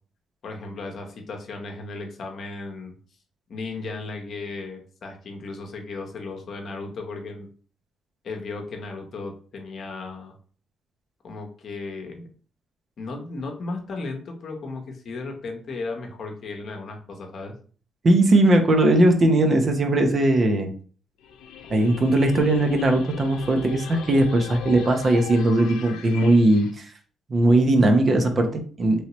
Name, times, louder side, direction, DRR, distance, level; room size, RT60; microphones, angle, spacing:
voice 1, 0.4-3.0 3.5-7.5 8.2-10.3 11.2-12.3 13.0-17.5, left 3 dB, 55° left, 2 dB, 0.8 m, -35 dB
voice 2, 18.0-20.7 21.7-26.9 27.3-29.0, right 1 dB, 40° right, 5 dB, 0.7 m, -19 dB
sound 1, 21.2-26.7, left 7 dB, 90° left, 0.3 m, -39 dB
3.1 x 2.8 x 3.0 m, 0.43 s
cardioid pair, 90°, 0 cm